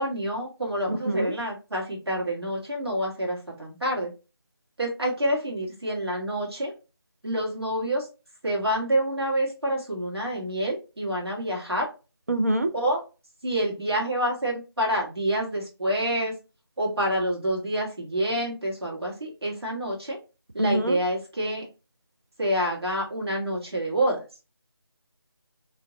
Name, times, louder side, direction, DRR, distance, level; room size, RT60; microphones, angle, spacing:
voice 1, 0.0-4.1 4.8-6.7 7.2-8.1 8.4-11.9 12.7-13.0 13.4-16.3 16.8-20.2 20.5-21.7 22.4-24.2, right 1 dB, 70° right, -2 dB, 1.8 m, -27 dB
voice 2, 0.9-1.3 12.3-12.7 20.6-21.0, right 1 dB, 40° right, 8 dB, 0.4 m, -25 dB
2.9 x 2.6 x 3.8 m, 0.31 s
figure-of-eight pair, 165°, 13 cm